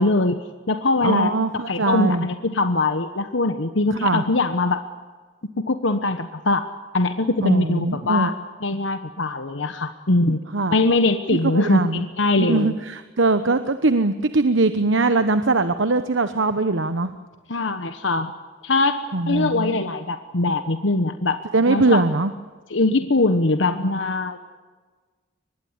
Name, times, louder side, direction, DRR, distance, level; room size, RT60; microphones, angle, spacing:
voice 1, 0.0-1.3 1.7-4.8 5.7-6.7 6.9-8.3 8.6-10.4 10.7-12.8 17.5-18.3 18.6-21.4 21.7-22.0 22.7-24.4, left 2 dB, 80° left, 8 dB, 1.2 m, -22 dB
voice 2, 1.0-2.3 4.0-4.2 7.4-8.3 10.5-10.8 11.3-12.0 12.4-17.1 19.1-19.8 21.5-22.3, right 3 dB, 80° right, 10 dB, 1.1 m, -21 dB
24.0 x 21.0 x 9.7 m, 1.4 s
head